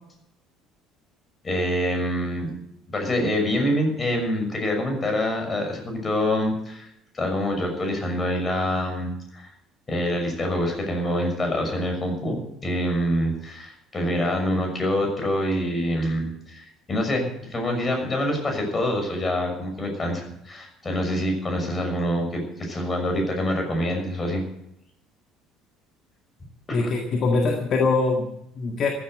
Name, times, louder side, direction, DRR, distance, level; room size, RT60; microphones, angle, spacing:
voice 1, 1.4-2.5 2.9-6.9 7.1-9.5 9.9-24.4 26.7-26.9, left 1 dB, 30° left, 3 dB, 6.3 m, -26 dB
voice 2, 26.7-28.9, left 3 dB, 45° left, 3 dB, 2.0 m, -23 dB
15.0 x 10.5 x 7.9 m, 0.79 s
figure-of-eight pair, 55°, 0 cm